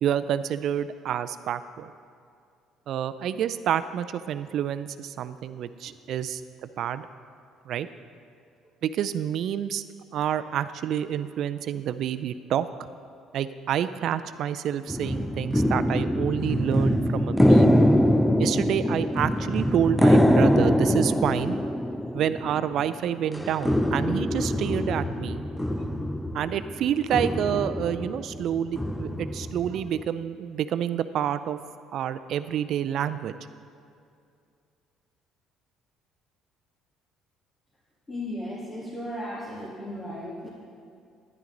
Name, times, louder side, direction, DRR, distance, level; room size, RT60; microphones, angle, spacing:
voice 1, 0.0-1.9 2.9-6.4 6.8-7.1 7.7-7.9 8.8-9.8 10.1-12.7 13.3-17.8 18.4-21.6 22.1-25.4 26.3-31.6 31.9-33.3, right 9 dB, 60° right, 13 dB, 0.4 m, -28 dB
sound 1, 14.9-23.0 23.3-30.0, equal, 5° left, 0.4 m, -24 dB
voice 2, 38.1-40.5, left 1 dB, 25° left, -7 dB, 2.2 m, -35 dB
10.5 x 10.5 x 3.9 m, 2.4 s
cardioid pair, 95°, 0 cm